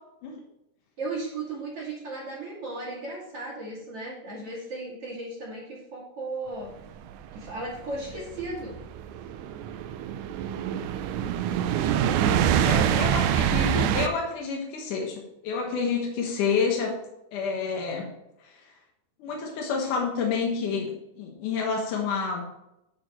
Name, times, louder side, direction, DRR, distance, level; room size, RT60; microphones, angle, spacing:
voice 1, 1.0-6.7 7.3-8.8 12.4-13.1, right 2 dB, 50° right, -4 dB, 3.3 m, -36 dB
sound 1, 7.0-14.1, right 9 dB, 85° right, 2.1 m, -25 dB
voice 2, 12.3-17.0 17.3-18.1 18.4-18.7 19.2-22.5, left 5 dB, 85° left, 0 dB, 2.8 m, -29 dB
10.5 x 4.5 x 4.4 m, 0.86 s
omnidirectional pair, 3.5 m